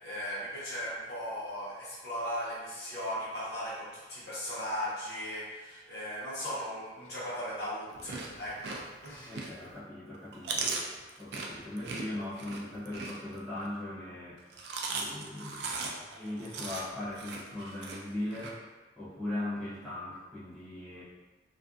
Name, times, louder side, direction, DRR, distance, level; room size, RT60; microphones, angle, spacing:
voice 1, 0.0-9.4, equal, 60° left, -8 dB, 0.8 m, -37 dB
Chewing mastication, 7.9-9.7 10.1-13.7 14.4-18.5, right 4 dB, 60° right, 0.3 m, -38 dB
voice 2, 9.2-10.7 11.2-14.4 14.9-15.8 16.1-21.0, left 1 dB, 5° left, -12 dB, 0.6 m, -39 dB
2.4 x 2.4 x 2.4 m, 1.2 s
head